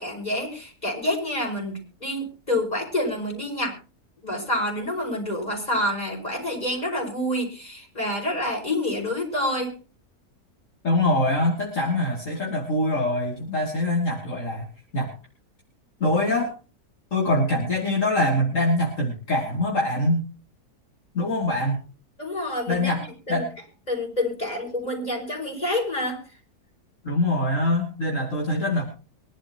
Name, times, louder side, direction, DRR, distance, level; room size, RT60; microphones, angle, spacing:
voice 1, 0.0-3.8 4.2-9.7 22.2-23.0 23.3-23.4 23.9-26.2, left 1 dB, 25° left, 0 dB, 6.1 m, -28 dB
voice 2, 10.8-14.7 14.9-15.1 16.0-16.5 17.1-20.2 21.1-21.8 22.7-23.0 23.3-23.5 27.0-28.8, left 1 dB, 55° left, -2 dB, 3.1 m, -23 dB
23.5 x 12.0 x 3.0 m, 0.35 s
omnidirectional pair, 1.6 m